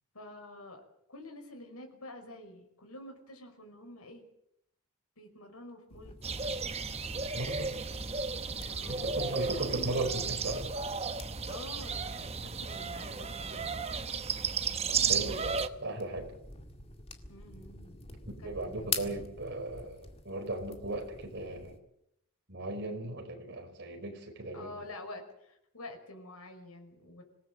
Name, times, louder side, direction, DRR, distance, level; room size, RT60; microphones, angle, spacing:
voice 1, 0.1-0.8 1.1-4.2 5.2-6.8 8.7-9.5 9.7-10.2 11.4-13.9 17.3-18.0 18.4-19.2 24.5-27.2, left 1 dB, 85° left, 4 dB, 5.5 m, -48 dB
sound 1, 5.9-21.8, left 4 dB, 25° left, 1.9 m, -46 dB
sound 2, 6.2-15.7, right 5 dB, 30° right, 1.0 m, -34 dB
voice 2, 7.3-7.8 8.9-10.7 14.9-16.3 18.4-21.8 22.5-24.8, right 2 dB, 50° right, 4 dB, 5.1 m, -37 dB
26.0 x 18.0 x 7.6 m, 0.77 s
head